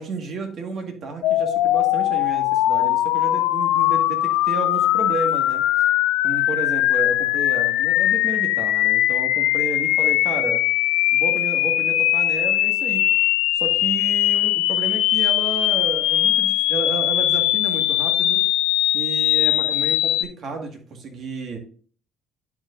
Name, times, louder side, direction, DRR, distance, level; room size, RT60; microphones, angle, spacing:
voice 1, 0.0-5.6 6.2-10.6 11.1-13.1 13.5-18.4 18.9-21.6, right 3 dB, 60° right, 3 dB, 1.7 m, -31 dB
sound 1, 1.2-20.2, left 14 dB, 90° left, 0.3 m, -20 dB
10.5 x 4.8 x 2.6 m, 0.43 s
cardioid pair, 85°, 0 cm